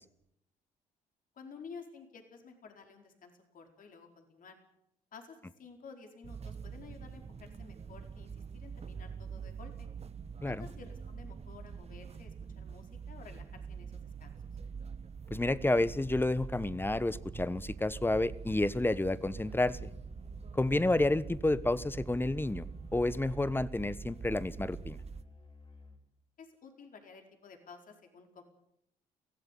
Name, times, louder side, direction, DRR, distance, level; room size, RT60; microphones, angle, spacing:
voice 1, 1.4-4.6 5.1-9.9 10.4-14.3 26.4-28.4, left 5 dB, 55° left, 4 dB, 4.7 m, -52 dB
sound 1, 6.2-25.2, right 5 dB, 40° right, 1.4 m, -44 dB
voice 2, 15.3-19.9 20.5-25.0, left 2 dB, 15° left, 18 dB, 1.1 m, -30 dB
Musical instrument, 19.4-26.2, left 3 dB, 35° left, 6.3 m, -56 dB
23.0 x 16.0 x 8.5 m, 0.75 s
supercardioid pair, 60°, 17 cm